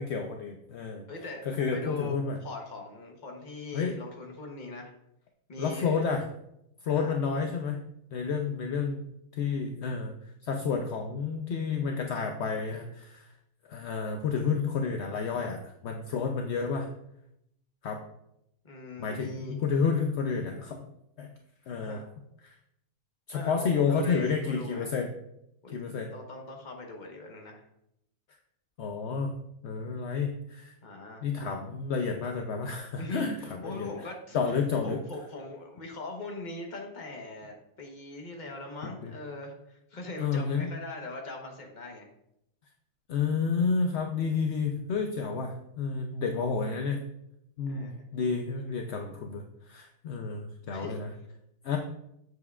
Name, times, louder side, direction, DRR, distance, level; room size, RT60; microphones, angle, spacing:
voice 1, 0.0-1.1 1.5-2.4 3.7-3.9 5.6-6.2 6.8-7.8 8.1-9.1 9.3-10.1 10.4-13.3 13.7-16.9 17.8-18.0 19.0-20.9 21.2-21.3 21.7-22.0 22.4-22.6 23.3-25.1 25.7-26.1 28.8-29.4 29.6-30.7 31.2-33.9 34.3-35.0 38.8-39.1 40.2-40.7 43.1-47.0 47.6-51.1 51.6-51.8, left 5 dB, 60° left, 3 dB, 0.7 m, -30 dB
voice 2, 1.1-4.9 5.5-6.0 6.9-7.2 18.6-19.6 21.8-22.0 23.3-24.9 25.6-27.6 30.8-31.2 33.0-34.4 34.8-42.1 47.6-48.1 50.7-51.0, left 2 dB, 35° left, 1 dB, 1.1 m, -41 dB
7.9 x 7.0 x 2.4 m, 0.79 s
omnidirectional pair, 1.6 m